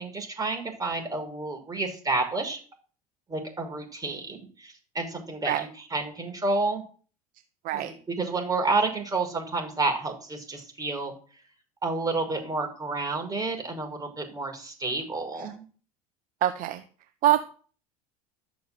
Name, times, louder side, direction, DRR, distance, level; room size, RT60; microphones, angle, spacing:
voice 1, 0.0-2.6 3.3-6.8 7.7-11.1 11.8-15.6, right 3 dB, 20° right, 3 dB, 6.1 m, -30 dB
voice 2, 16.4-16.8 17.2-17.5, right 12 dB, 45° right, 10 dB, 1.1 m, -24 dB
12.5 x 7.2 x 7.9 m, 0.42 s
figure-of-eight pair, 75°, 19 cm